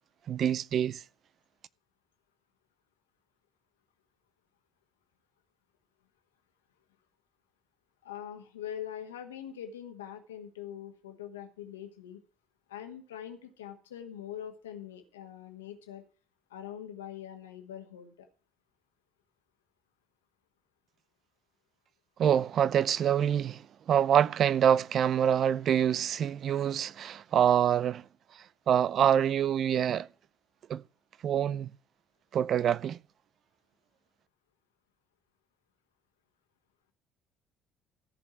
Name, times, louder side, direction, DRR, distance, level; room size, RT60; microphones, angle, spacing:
voice 1, 0.3-1.0 22.2-23.6 23.9-28.0 28.7-30.1 30.7-30.8 31.2-31.7 32.3-33.0, right 9 dB, 50° right, 0.5 m, -25 dB
voice 2, 8.0-12.2 12.7-16.0 16.5-18.3, left 10 dB, 75° left, 1.6 m, -43 dB
14.0 x 5.3 x 8.2 m
figure-of-eight pair, 55°, 0 cm